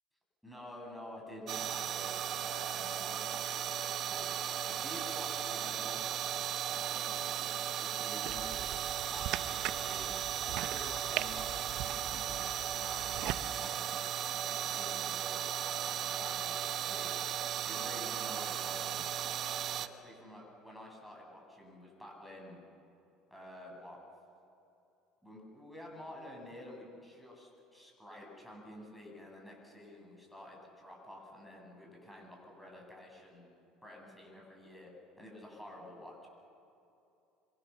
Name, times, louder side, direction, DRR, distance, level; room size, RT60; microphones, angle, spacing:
voice 1, 0.4-4.3 4.7-6.3 6.7-8.7 9.1-10.1 10.5-14.0 14.3-15.5 15.9-17.1 17.7-18.9 19.7-22.6 23.3-24.0 25.2-33.5 33.8-34.9 35.2-36.3, left 1 dB, ahead, -2 dB, 7.8 m, -50 dB
sound 1, 1.5-19.9, right 10 dB, 50° right, 1.1 m, -36 dB
sound 2, 8.2-13.4, right 14 dB, 65° right, 0.9 m, -41 dB
26.5 x 24.0 x 7.1 m, 2.8 s
supercardioid pair, 115°, 0 cm